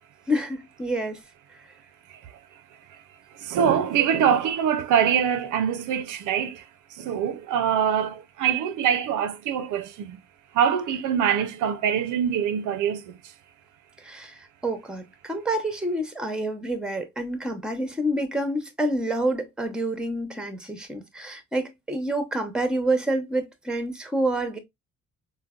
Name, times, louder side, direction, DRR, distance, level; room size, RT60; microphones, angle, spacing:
voice 1, 0.3-1.2 14.0-24.6, right 1 dB, 5° right, 0.7 m, -28 dB
voice 2, 3.3-6.6 6.9-10.2 10.5-13.2, right 8 dB, 80° right, 0.5 m, -24 dB
3.8 x 2.1 x 2.3 m
cardioid pair, 90°, 30 cm